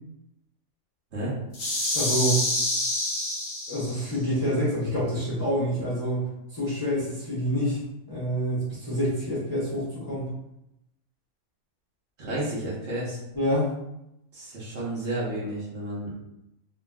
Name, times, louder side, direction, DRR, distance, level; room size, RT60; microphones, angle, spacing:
sound 1, 1.5-4.1, left 1 dB, 45° left, 1.0 m, -27 dB
voice 1, 1.9-2.4 3.7-6.3 6.5-7.8 8.1-10.3 13.3-13.7, equal, 20° left, -9 dB, 0.7 m, -27 dB
voice 2, 12.2-13.2 14.3-16.1, right 1 dB, 55° right, -7 dB, 1.0 m, -31 dB
2.9 x 2.6 x 2.2 m, 0.85 s
omnidirectional pair, 1.5 m